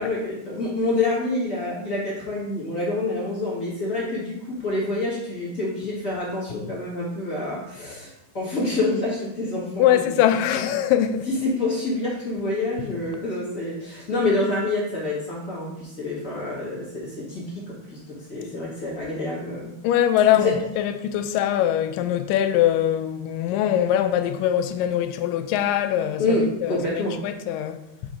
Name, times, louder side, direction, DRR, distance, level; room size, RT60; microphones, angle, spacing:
voice 1, 0.0-10.2 10.5-10.6 11.3-19.7 20.4-20.5 26.2-27.2, left 2 dB, 40° left, 1.3 m, -27 dB
voice 2, 9.8-11.3 19.8-26.8 27.2-28.1, left 11 dB, 90° left, 2.2 m, -22 dB
5.7 x 3.8 x 4.9 m
omnidirectional pair, 3.8 m